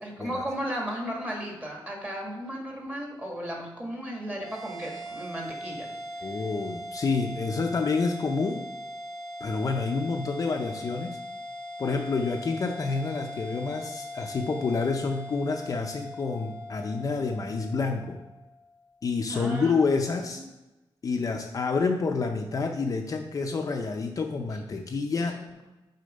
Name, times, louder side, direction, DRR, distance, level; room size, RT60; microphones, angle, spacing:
voice 1, 0.0-5.9 19.3-19.7 20.3-20.5 25.1-25.5, equal, 15° right, 0 dB, 1.5 m, -35 dB
sound 1, 4.3-18.9, left 1 dB, 75° right, 2.0 m, -40 dB
voice 2, 6.2-8.7 9.4-11.2 11.8-18.2 19.0-20.4 21.0-25.4, left 4 dB, 40° left, 3 dB, 0.5 m, -28 dB
6.6 x 4.1 x 5.2 m, 1.0 s
wide cardioid pair, 175°, 9 cm